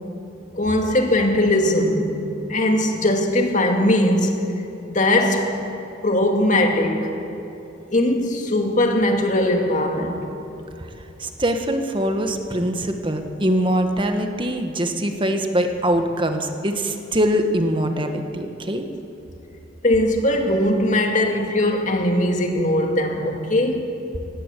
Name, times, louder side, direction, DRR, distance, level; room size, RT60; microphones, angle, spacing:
voice 1, 0.5-2.2 2.5-4.4 4.9-5.5 6.0-7.1 7.9-10.2 19.8-23.9, left 1 dB, 40° left, 3 dB, 2.2 m, -20 dB
voice 2, 11.2-18.8, right 1 dB, 25° right, 6 dB, 1.4 m, -23 dB
18.0 x 17.5 x 8.3 m, 2.9 s
head